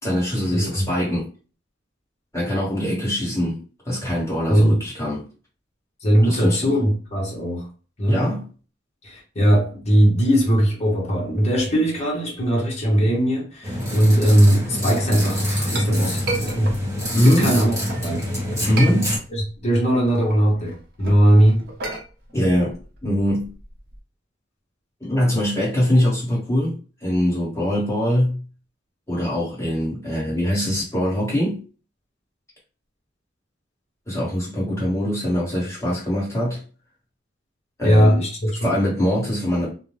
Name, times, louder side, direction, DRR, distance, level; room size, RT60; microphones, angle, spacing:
voice 1, 0.0-1.2 2.3-5.2 6.2-6.7 8.1-8.5 17.1-17.6 18.7-19.1 22.3-23.5 25.0-28.4 29.1-31.6 34.1-36.6 37.8-38.2 38.6-39.7, equal, 15° left, 1.4 m, -22 dB
voice 2, 0.5-0.9 4.5-4.8 6.0-7.7 8.0-8.2 9.0-16.7 17.2-18.3 19.3-21.6 34.7-34.8 37.8-38.7, equal, 35° left, 0.9 m, -19 dB
sound 1, 13.6-19.2, equal, 15° right, 1.2 m, -25 dB
Chink clink, 15.2-18.1 18.5-19.6 19.9-24.0, right 2 dB, 55° right, 0.8 m, -33 dB
2.5 x 2.1 x 3.1 m
head